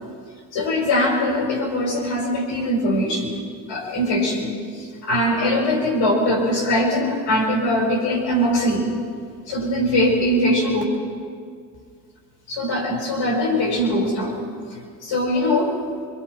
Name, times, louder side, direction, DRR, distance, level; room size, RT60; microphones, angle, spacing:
voice 1, 0.5-3.3 3.7-8.9 9.5-10.8 12.5-14.4 14.7-15.8, left 1 dB, 80° left, 0 dB, 6.1 m, -21 dB
24.0 x 23.5 x 4.9 m, 2.1 s
supercardioid pair, 55°, 45 cm